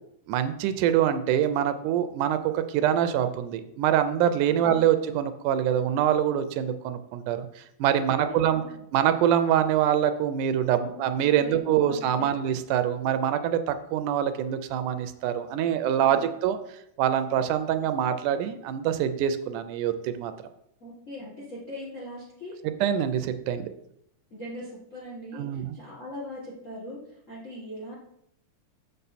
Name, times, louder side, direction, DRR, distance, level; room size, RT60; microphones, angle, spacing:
voice 1, 0.3-8.6 8.9-16.6 17.0-20.3 22.8-23.7 25.3-25.8, right 10 dB, 80° right, 10 dB, 2.1 m, -25 dB
voice 2, 4.5-4.8 7.9-8.8 10.8-11.5 11.8-12.3 15.9-16.3 20.8-22.6 24.3-27.9, left 1 dB, 45° left, -4 dB, 1.0 m, -41 dB
7.3 x 5.5 x 4.1 m, 0.76 s
omnidirectional pair, 3.6 m